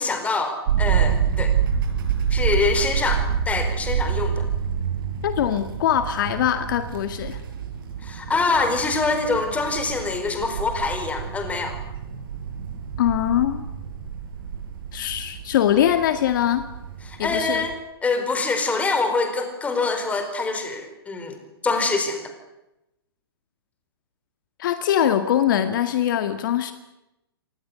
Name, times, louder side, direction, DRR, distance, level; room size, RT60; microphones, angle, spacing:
voice 1, 0.0-1.5 2.3-4.5 8.0-11.8 17.0-17.8 18.0-21.4 21.6-22.3, left 3 dB, 10° left, 7 dB, 4.7 m, -25 dB
sound 1, 0.7-17.7, right 8 dB, 60° right, 7.1 m, -27 dB
voice 2, 5.2-7.4 13.0-13.6 14.9-16.6 17.2-17.6 24.6-26.7, left 10 dB, 55° left, 9 dB, 2.0 m, -22 dB
26.5 x 19.0 x 9.7 m, 0.92 s
hypercardioid pair, 135°, 13 cm